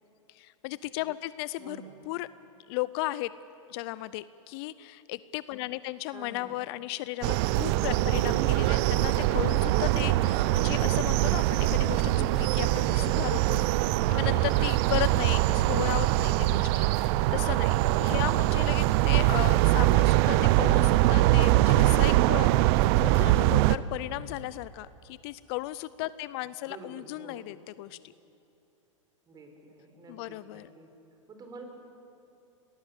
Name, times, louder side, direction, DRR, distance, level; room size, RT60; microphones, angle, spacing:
voice 1, 0.3-1.8 2.1-2.3 2.7-3.3 3.7-13.7 14.1-28.0 30.1-30.7, left 17 dB, 50° left, 17 dB, 0.6 m, -35 dB
voice 2, 1.6-2.0 6.1-6.6 14.2-14.9 26.6-27.5 29.3-30.9 31.3-31.6, right 2 dB, 25° right, 4 dB, 4.3 m, -48 dB
sound 1, 7.2-23.8, right 16 dB, 50° right, 0.7 m, -23 dB
24.0 x 19.0 x 8.2 m, 2.8 s
hypercardioid pair, 115°, 17 cm